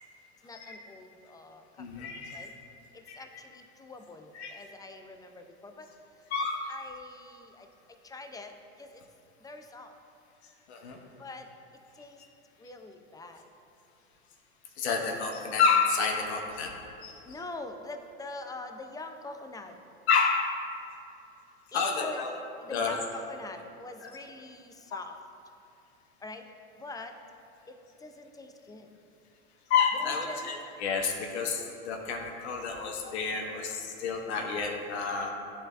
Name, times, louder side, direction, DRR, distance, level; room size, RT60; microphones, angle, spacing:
voice 1, 0.4-1.6 2.0-2.1 2.3-2.5 3.2-5.9 6.7-7.7 8.0-8.5 8.8-8.9 9.4-9.9 11.2-11.5 12.0-12.2 12.6-13.4 17.3-19.7 21.7-22.2 22.6-25.1 26.2-26.4 26.8-27.1 27.7-27.8 28.0-28.9 30.0-30.5, left 2 dB, 10° left, 6 dB, 0.4 m, -44 dB
voice 2, 1.8-2.5 3.1-3.2 4.3-4.5 6.3-6.7 10.7-11.0 14.8-16.7 17.0-17.2 20.1-20.6 21.7-22.3 22.7-23.0 24.0-24.1 24.9-25.0 29.7-35.3, left 5 dB, 85° left, 1 dB, 0.9 m, -29 dB
11.5 x 4.0 x 2.4 m, 2.7 s
hypercardioid pair, 105°, 32 cm